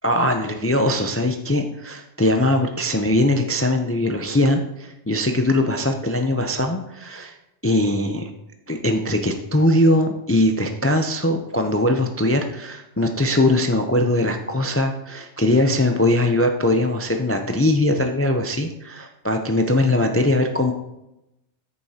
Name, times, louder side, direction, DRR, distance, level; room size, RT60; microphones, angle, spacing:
voice 1, 0.0-7.3 7.6-8.3 8.7-20.7, left 1 dB, 20° left, 5 dB, 0.3 m, -21 dB
13.5 x 6.9 x 2.8 m, 0.91 s
omnidirectional pair, 1.2 m